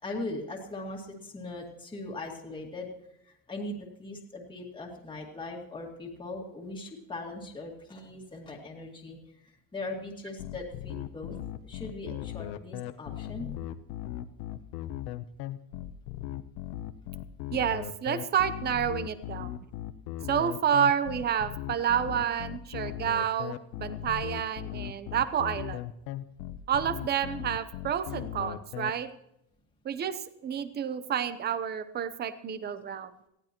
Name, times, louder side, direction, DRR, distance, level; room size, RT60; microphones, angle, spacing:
voice 1, 0.0-2.9 3.2-9.2 9.7-11.4 11.6-13.5, left 2 dB, 15° left, -1 dB, 2.1 m, -40 dB
sound 1, 10.4-28.9, left 13 dB, 85° left, 0.9 m, -38 dB
voice 2, 17.5-19.5 20.3-25.8 26.7-29.1 29.8-33.1, right 8 dB, 25° right, 13 dB, 0.8 m, -29 dB
19.5 x 15.5 x 3.0 m, 0.81 s
cardioid pair, 155°, 37 cm